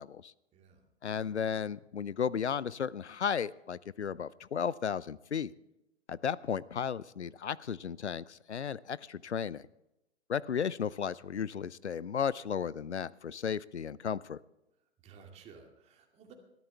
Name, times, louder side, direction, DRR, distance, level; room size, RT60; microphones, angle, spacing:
voice 1, 0.0-0.3 1.0-5.5 6.1-9.6 10.3-14.4, left 7 dB, 80° left, 21 dB, 0.6 m, -34 dB
voice 2, 0.5-0.8 15.0-16.3, right 6 dB, 20° right, 2 dB, 2.4 m, -55 dB
20.5 x 13.5 x 3.4 m, 0.89 s
figure-of-eight pair, 115°, 34 cm